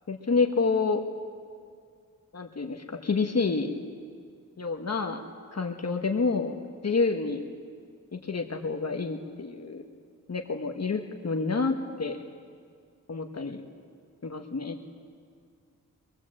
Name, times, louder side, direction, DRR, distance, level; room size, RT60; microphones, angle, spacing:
voice 1, 0.1-1.0 2.3-3.7 4.6-5.2 5.5-6.5 6.8-7.4 8.1-9.9 10.3-12.2 13.1-13.6 14.2-14.8, left 4 dB, 50° left, 4 dB, 1.3 m, -28 dB
24.5 x 21.0 x 7.6 m, 2.2 s
wide cardioid pair, 100°, 33 cm